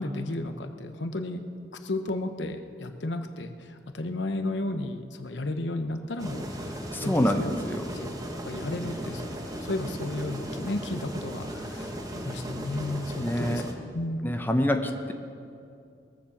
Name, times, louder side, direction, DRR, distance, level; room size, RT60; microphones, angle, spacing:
voice 1, 0.0-1.4 1.8-7.5 7.9-8.1 8.4-13.6 13.9-14.2, left 2 dB, 75° left, 7 dB, 0.9 m, -33 dB
sound 1, 6.2-13.7, equal, 20° right, 1.3 m, -37 dB
voice 2, 6.9-7.8 13.2-13.6 14.2-15.1, left 1 dB, 10° left, 5 dB, 0.8 m, -26 dB
21.5 x 7.3 x 7.2 m, 2.5 s
head